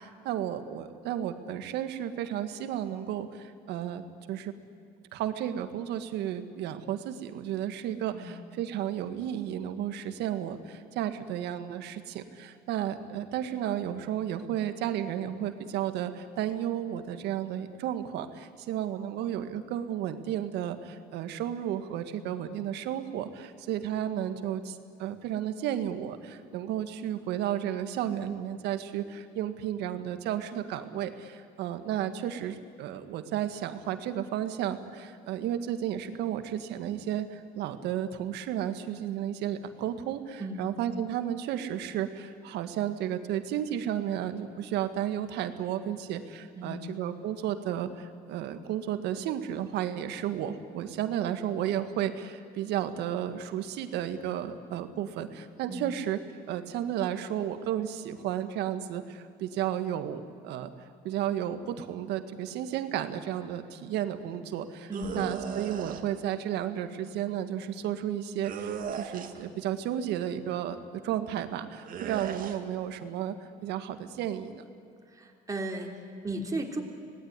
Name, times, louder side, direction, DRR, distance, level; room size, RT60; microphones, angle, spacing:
voice 1, 0.0-4.0 4.3-4.5 5.1-56.2 56.5-60.7 61.0-70.8 71.0-74.6, right 10 dB, 85° right, 9 dB, 1.7 m, -33 dB
sound 1, 64.9-66.0 68.4-69.5 71.9-72.6, right 7 dB, 55° right, 2.1 m, -36 dB
voice 2, 75.1-76.8, right 1 dB, 20° right, 1 dB, 3.5 m, -35 dB
25.5 x 18.5 x 9.7 m, 2.5 s
cardioid pair, 110°, 17 cm